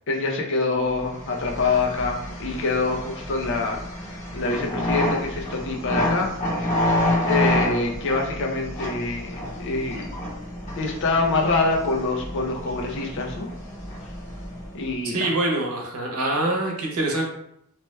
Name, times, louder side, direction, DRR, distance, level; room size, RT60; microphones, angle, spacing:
voice 1, 0.1-3.8 4.3-6.3 7.2-10.1 10.8-13.5 14.7-15.3, left 3 dB, 60° left, 1 dB, 0.5 m, -25 dB
sound 1, 1.0-14.9, left 1 dB, 35° left, 1.0 m, -29 dB
voice 2, 15.0-17.2, right 2 dB, 90° right, 0 dB, 0.8 m, -25 dB
2.9 x 2.1 x 3.1 m, 0.75 s
head